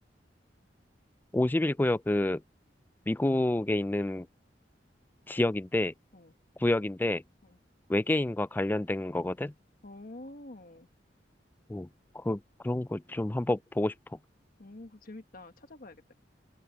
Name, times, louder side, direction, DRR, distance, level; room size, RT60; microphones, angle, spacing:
voice 1, 1.3-2.4 3.1-4.3 5.3-5.9 6.6-7.2 7.9-9.5 11.7-11.9 12.1-13.9, left 1 dB, 10° left, 0.3 m, -28 dB
voice 2, 9.8-10.9 14.6-16.1, left 2 dB, 50° left, 1.3 m, -47 dB
open air
head